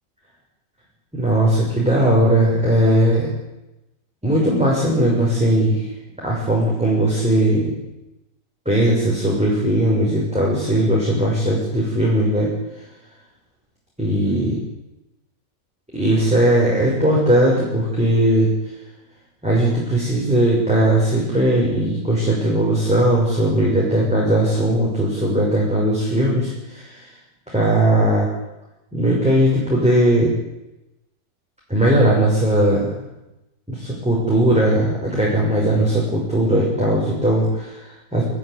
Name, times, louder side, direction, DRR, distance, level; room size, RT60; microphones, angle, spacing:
voice 1, 1.1-3.3 4.2-5.9 6.2-7.8 8.6-12.5 14.0-14.6 15.9-18.5 19.4-27.1 27.5-28.3 28.9-30.3 31.7-32.9 33.7-38.2, right 1 dB, 5° right, -4 dB, 6.2 m, -18 dB
25.0 x 14.0 x 9.8 m, 0.97 s
omnidirectional pair, 1.9 m